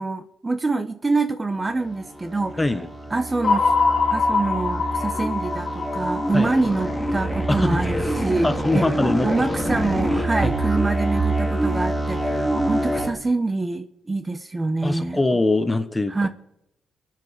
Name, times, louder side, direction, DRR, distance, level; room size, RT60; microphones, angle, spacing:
voice 1, 0.0-2.6 3.1-3.7 4.1-8.5 8.7-8.9 9.2-15.2 16.1-16.3, right 3 dB, 20° right, 11 dB, 0.8 m, -25 dB
sound 1, 1.7-13.1, right 1 dB, 5° right, 2.4 m, -26 dB
voice 2, 2.6-2.9 6.3-6.5 7.5-7.8 8.4-9.3 10.1-10.5 14.8-16.1, left 2 dB, 15° left, 11 dB, 1.2 m, -22 dB
sound 2, 3.4-7.7, left 4 dB, 50° left, 1.7 m, -24 dB
24.0 x 9.5 x 5.0 m, 0.83 s
cardioid pair, 90°, 0 cm